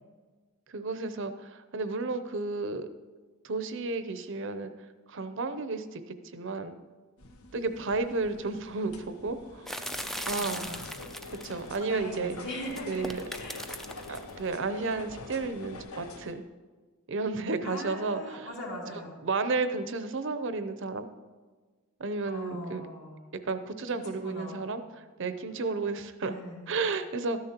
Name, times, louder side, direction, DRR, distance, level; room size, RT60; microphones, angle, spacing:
voice 1, 0.7-2.9 3.4-4.7 5.1-6.8 7.5-9.7 10.3-10.7 11.4-12.4 12.9-13.2 14.1-16.4 17.1-18.5 19.2-21.1 22.0-22.8 23.4-26.3 26.7-27.4, right 3 dB, 60° right, 9 dB, 0.6 m, -32 dB
sound 1, 7.2-16.3, left 3 dB, 80° left, 0.9 m, -45 dB
sound 2, 9.7-11.8 12.6-14.3, equal, ahead, 0.3 m, -38 dB
voice 2, 10.3-10.9 11.3-11.5 11.8-13.7 17.6-19.2 22.2-23.4 23.9-24.6 26.2-26.7, left 1 dB, 55° left, -3 dB, 2.4 m, -41 dB
13.0 x 10.5 x 2.9 m, 1.4 s
head